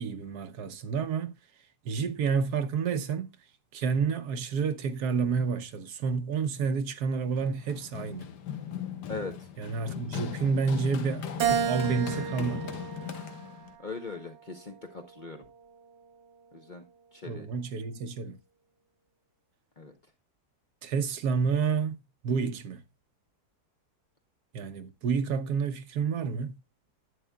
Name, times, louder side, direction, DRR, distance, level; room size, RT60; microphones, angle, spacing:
voice 1, 0.0-1.4 1.9-3.3 3.7-8.3 9.6-12.7 17.3-18.4 20.8-22.0 22.2-22.8 24.5-26.6, right 5 dB, 75° right, 1.4 m, -29 dB
Run, 7.4-13.7, left 8 dB, 90° left, 1.6 m, -38 dB
voice 2, 9.1-9.5 13.8-15.4 16.5-16.8 17.1-17.5 19.8-19.9, left 3 dB, 35° left, 0.9 m, -40 dB
Keyboard (musical), 11.4-13.9 14.5-15.7, right 7 dB, 55° right, 0.8 m, -32 dB
11.0 x 8.3 x 2.2 m
omnidirectional pair, 1.7 m